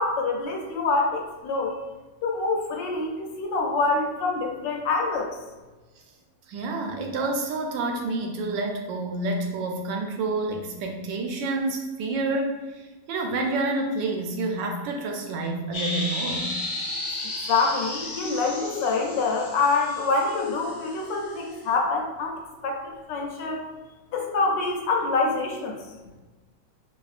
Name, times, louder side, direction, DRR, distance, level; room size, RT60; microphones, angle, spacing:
voice 1, 0.0-1.7 2.2-5.3 17.5-23.6 24.1-25.8, left 3 dB, 75° left, 0 dB, 1.3 m, -26 dB
voice 2, 6.5-16.5 17.1-17.2, right 2 dB, 80° right, 2 dB, 1.3 m, -28 dB
sound 1, 15.7-21.6, left 2 dB, 55° left, 1.2 m, -34 dB
4.1 x 2.7 x 2.4 m, 1.2 s
omnidirectional pair, 2.0 m